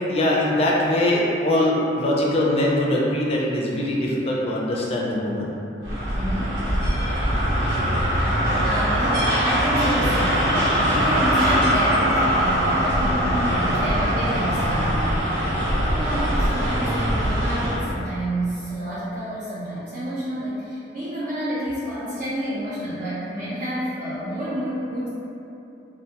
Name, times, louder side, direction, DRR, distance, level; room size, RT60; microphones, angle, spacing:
voice 1, 0.1-5.5 13.6-13.7, left 1 dB, 35° left, -3 dB, 0.4 m, -22 dB
sound 1, 5.8-17.9, equal, 90° right, 0.7 m, -22 dB
voice 2, 6.1-6.6 7.9-8.2 8.6-25.1, equal, 50° right, -11 dB, 0.5 m, -29 dB
2.4 x 2.1 x 2.7 m, 2.9 s
head